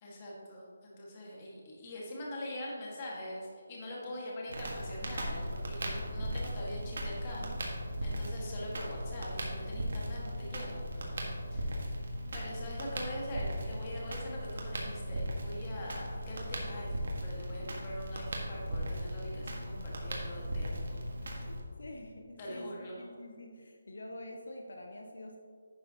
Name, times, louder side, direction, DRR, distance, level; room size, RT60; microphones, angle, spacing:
voice 1, 0.0-7.5 8.0-11.2 11.5-11.9 12.3-21.5 22.4-23.0, left 1 dB, 25° left, -4 dB, 1.8 m, -43 dB
Crackle, 4.5-21.6, equal, 60° right, 1.7 m, -37 dB
voice 2, 8.0-8.3 21.3-25.4, left 1 dB, 75° left, 2 dB, 1.0 m, -48 dB
10.5 x 6.7 x 3.0 m, 2.1 s
hypercardioid pair, 170°, 0 cm